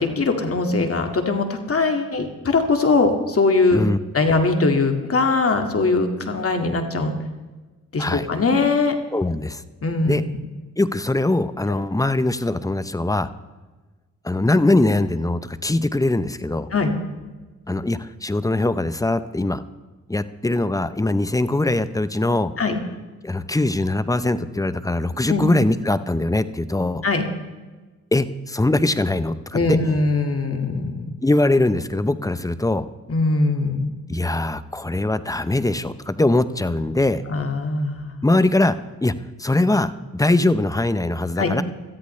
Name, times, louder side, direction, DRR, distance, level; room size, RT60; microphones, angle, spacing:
voice 1, 0.0-3.8 4.1-7.1 7.9-9.0 9.8-10.4 16.7-16.9 22.6-22.8 25.3-25.5 27.0-27.2 29.5-31.1 33.1-33.9 37.3-38.1 41.4-41.5, left 3 dB, 45° left, 5 dB, 2.1 m, -21 dB
voice 2, 9.1-9.6 10.1-10.2 10.8-13.3 14.2-16.7 17.7-19.6 20.1-22.5 23.2-27.0 28.1-29.8 31.2-32.9 34.1-37.2 38.2-41.6, left 2 dB, 10° left, 13 dB, 0.7 m, -21 dB
18.5 x 13.5 x 3.2 m, 1.3 s
cardioid pair, 65°, 31 cm